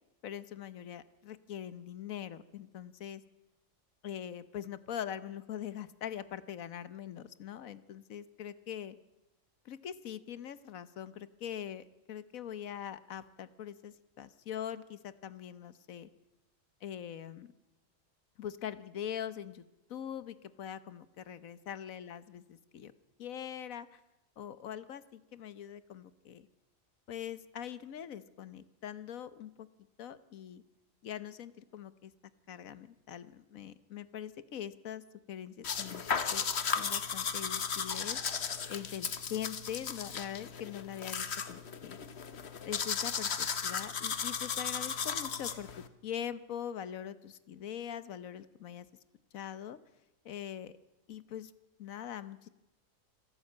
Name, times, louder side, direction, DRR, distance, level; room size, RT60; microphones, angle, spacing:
voice 1, 0.2-3.2 4.0-9.0 9.6-16.1 16.8-17.5 18.4-19.6 19.9-22.9 23.2-24.0 24.4-26.5 27.1-29.7 30.0-30.6 31.0-32.1 32.5-36.0 36.3-38.2 38.7-42.0 42.6-45.7 46.0-48.9 49.3-49.8 50.2-50.8 51.1-51.5 51.8-52.5, left 9 dB, 85° left, 15 dB, 1.4 m, -42 dB
sound 1, 35.6-45.9, left 6 dB, 55° left, 1.4 m, -35 dB
26.0 x 12.5 x 8.6 m, 1.0 s
omnidirectional pair, 1.4 m